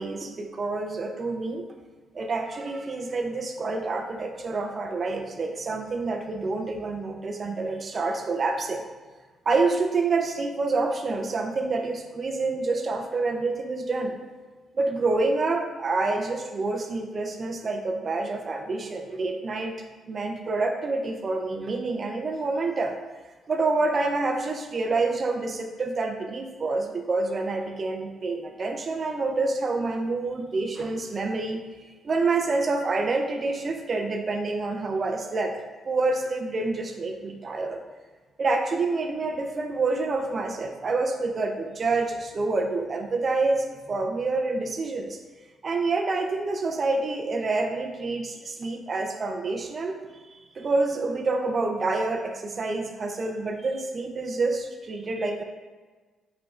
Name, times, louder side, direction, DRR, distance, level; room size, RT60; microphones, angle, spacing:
voice 1, 0.0-1.6 2.1-8.8 9.5-14.2 14.7-19.8 20.1-23.0 23.5-31.6 32.0-35.5 35.9-37.8 38.4-45.2 45.6-50.0 50.5-55.4, right 3 dB, 40° right, 4 dB, 0.5 m, -27 dB
4.9 x 4.4 x 2.4 m, 1.4 s
cardioid pair, 90°, 0 cm